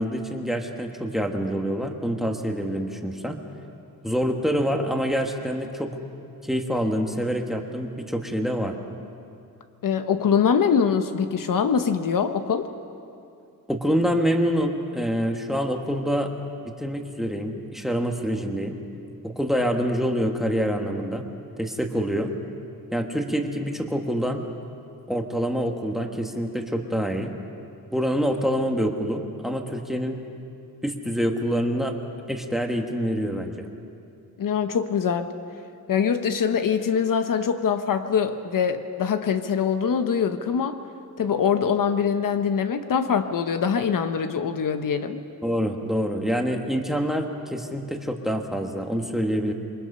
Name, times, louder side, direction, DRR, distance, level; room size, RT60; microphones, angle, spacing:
voice 1, 0.0-3.4 4.0-5.9 6.4-8.7 13.7-16.3 16.8-18.8 19.2-21.3 21.6-22.3 22.9-24.4 25.1-27.3 27.9-30.2 30.8-32.0 32.3-33.5 45.4-49.5, equal, ahead, 3 dB, 1.4 m, -26 dB
voice 2, 9.8-12.7 34.4-35.3 35.9-40.8 41.2-45.2, left 7 dB, 70° left, 8 dB, 1.0 m, -23 dB
27.0 x 23.5 x 5.6 m, 2.5 s
wide cardioid pair, 165°, 34 cm